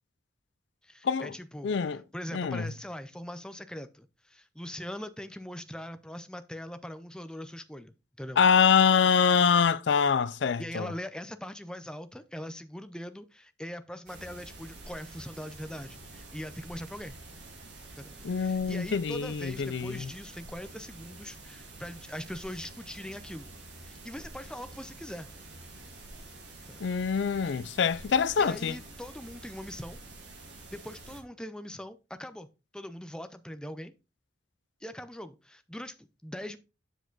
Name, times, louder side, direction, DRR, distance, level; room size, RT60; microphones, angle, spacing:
voice 1, 0.8-8.4 10.6-17.2 18.0-23.5 23.8-25.3 26.7-26.8 28.4-30.0 30.7-32.5 32.7-33.9 34.8-36.6, equal, 5° left, 0.4 m, -41 dB
voice 2, 1.6-2.0 2.3-2.6 8.4-10.9 18.2-20.1 26.8-28.8, left 6 dB, 75° left, 0.4 m, -25 dB
sound 1, 14.1-31.2, right 2 dB, 75° right, 2.7 m, -48 dB
8.0 x 4.9 x 3.8 m
head